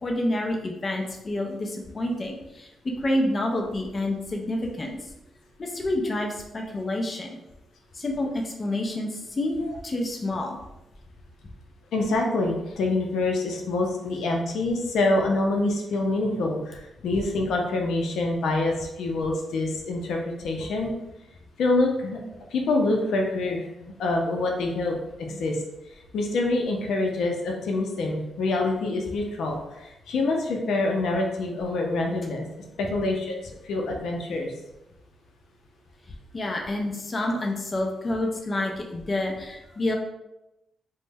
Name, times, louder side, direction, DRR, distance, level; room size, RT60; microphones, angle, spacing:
voice 1, 0.0-5.1 5.6-7.4 7.9-10.6 36.3-40.0, left 1 dB, 30° left, 1 dB, 0.5 m, -28 dB
voice 2, 11.9-20.9 21.6-22.2 22.5-25.6 26.1-32.4 32.8-34.5, left 2 dB, 85° left, 1 dB, 0.5 m, -26 dB
3.0 x 2.1 x 3.4 m, 0.93 s
cardioid pair, 110°, 0 cm